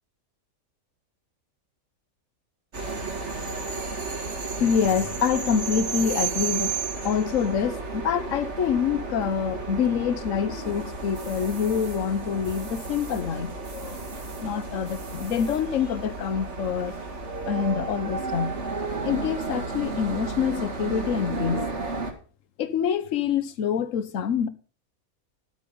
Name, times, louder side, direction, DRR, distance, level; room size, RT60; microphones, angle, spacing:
sound 1, 2.7-22.1, right 4 dB, 50° right, 2.3 m, -32 dB
voice 1, 4.6-6.7 7.0-14.1 14.4-16.9 17.5-18.6 19.0-21.7 22.6-24.5, left 7 dB, 65° left, 1.3 m, -26 dB
13.0 x 7.9 x 5.4 m
omnidirectional pair, 1.5 m